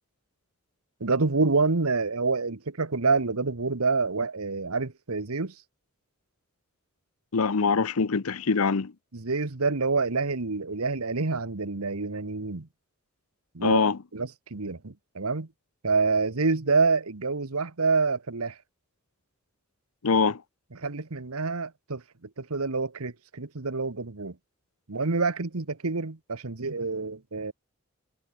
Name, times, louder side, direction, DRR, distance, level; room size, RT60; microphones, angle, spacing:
voice 1, 1.0-5.5 9.1-12.7 13.5-13.8 14.1-15.5 15.8-18.6 20.7-22.0 22.4-24.4 24.9-27.5, right 4 dB, 80° right, 1.3 m, -27 dB
voice 2, 7.3-8.9 13.6-14.0 20.0-20.4, left 5 dB, 80° left, 0.7 m, -23 dB
head